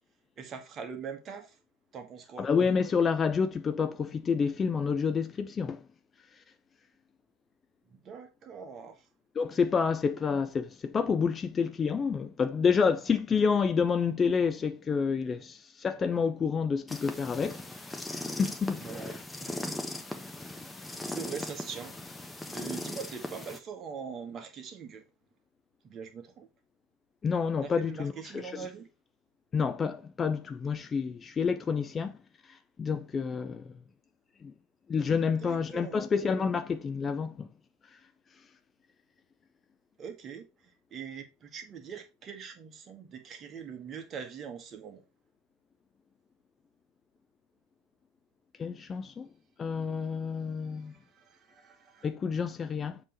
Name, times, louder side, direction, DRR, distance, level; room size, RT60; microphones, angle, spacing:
voice 1, 0.4-1.6 1.9-2.5 7.9-9.0 18.8-19.8 20.8-21.9 22.5-25.0 25.8-26.5 27.6-28.9 35.1-36.0 40.0-40.5 40.9-45.0 50.7-52.1, right 6 dB, 30° right, 1.4 m, -43 dB
voice 2, 2.4-5.8 9.4-17.6 18.1-18.8 27.2-28.7 29.5-32.1 32.8-33.7 34.4-34.5 34.9-37.5 48.6-49.3 49.6-50.9 52.0-53.0, left 5 dB, 25° left, 0.6 m, -29 dB
sound 1, 16.9-23.6, left 2 dB, 10° left, 1.1 m, -39 dB
7.4 x 3.2 x 5.0 m
figure-of-eight pair, 80°, 0 cm